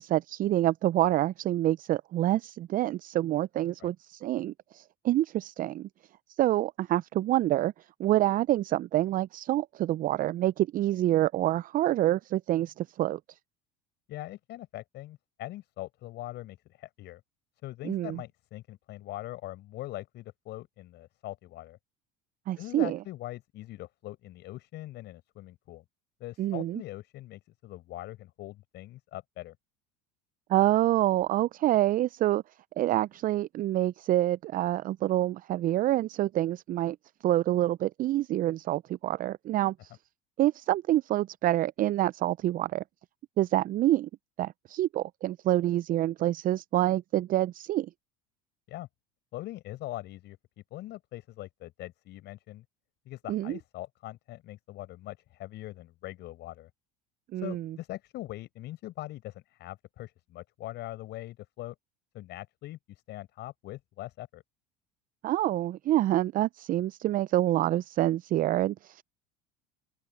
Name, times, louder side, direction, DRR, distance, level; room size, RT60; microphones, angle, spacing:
voice 1, 0.0-5.9 6.4-7.7 8.0-13.2 17.8-18.2 22.5-23.0 26.4-26.8 30.5-32.4 32.8-37.0 37.2-39.9 40.4-42.8 43.4-44.1 44.4-47.9 53.3-53.6 57.3-57.7 65.2-69.0, right 14 dB, 40° right, 0.5 m, -27 dB
voice 2, 14.1-17.2 17.6-21.8 22.6-25.8 26.2-29.6 48.7-48.9 49.3-50.4 50.7-52.6 53.1-56.7 57.4-61.8 62.1-64.4, left 16 dB, 55° left, 5.4 m, -42 dB
open air
hypercardioid pair, 75°, 21 cm